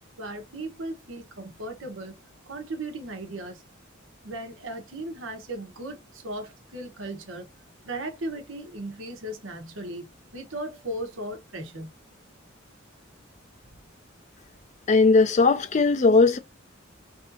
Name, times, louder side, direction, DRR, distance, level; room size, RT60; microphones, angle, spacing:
voice 1, 0.2-2.1 2.5-3.6 4.2-7.5 7.8-11.9, right 1 dB, 85° right, 1.2 m, -36 dB
voice 2, 14.9-16.4, left 3 dB, 35° left, 0.4 m, -18 dB
3.3 x 2.8 x 3.9 m
head